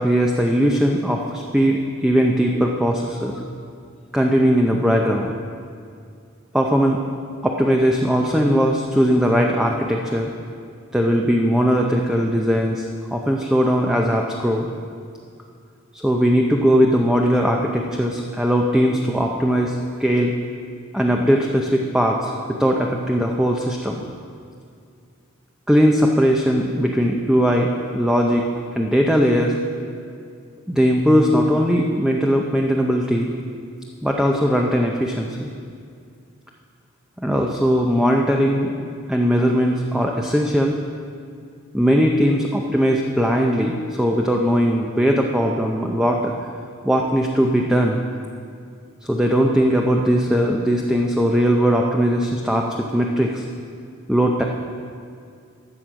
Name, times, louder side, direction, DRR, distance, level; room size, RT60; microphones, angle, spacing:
voice 1, 0.0-3.4 4.1-5.3 6.5-7.0 7.4-10.3 10.9-14.7 15.9-20.3 20.9-24.0 25.7-28.4 28.8-29.6 30.7-33.3 34.0-35.5 37.2-38.7 39.1-40.8 41.7-46.3 46.8-48.0 49.0-53.4 54.1-54.4, equal, 5° right, 0 dB, 0.6 m, -19 dB
13.0 x 7.5 x 6.2 m, 2.3 s
head